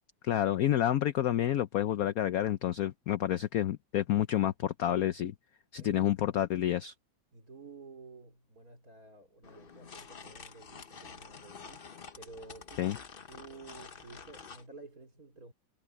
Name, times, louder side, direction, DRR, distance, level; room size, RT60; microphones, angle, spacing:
voice 1, 0.2-5.3 5.7-6.9 12.8-13.0, left 12 dB, 65° left, 0.9 m, -29 dB
voice 2, 5.7-6.1 7.3-12.9 13.3-15.5, right 4 dB, 45° right, 4.9 m, -51 dB
sound 1, 9.4-14.7, left 5 dB, 40° left, 0.9 m, -49 dB
omnidirectional pair, 2.1 m